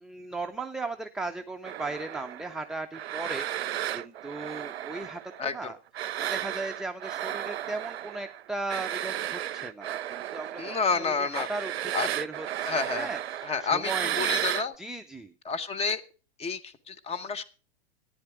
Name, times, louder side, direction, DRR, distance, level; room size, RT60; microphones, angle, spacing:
voice 1, 0.0-5.2 5.5-14.4 14.8-15.3, right 2 dB, ahead, 4 dB, 0.5 m, -37 dB
sound 1, 1.6-5.6 5.9-14.7, right 12 dB, 70° right, 0.5 m, -34 dB
voice 2, 5.4-5.7 10.6-11.5 11.9-12.1 12.7-13.1 13.4-14.7 15.4-16.0 16.4-17.4, left 5 dB, 20° left, 9 dB, 1.0 m, -30 dB
14.0 x 10.0 x 4.7 m, 0.36 s
hypercardioid pair, 110°, 32 cm